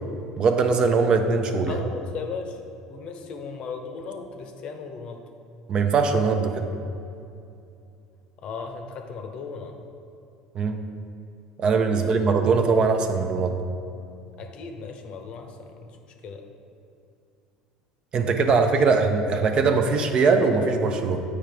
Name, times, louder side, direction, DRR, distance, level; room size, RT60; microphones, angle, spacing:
voice 1, 0.4-1.8 5.7-6.6 10.5-10.8 11.6-13.6 18.1-21.2, right 4 dB, 40° right, 6 dB, 0.6 m, -21 dB
voice 2, 1.7-2.6 2.9-5.2 8.4-9.8 11.9-12.2 14.4-16.0 16.2-16.4, left 5 dB, 50° left, 5 dB, 0.7 m, -36 dB
7.3 x 4.9 x 3.4 m, 2.6 s
hypercardioid pair, 70°, 2 cm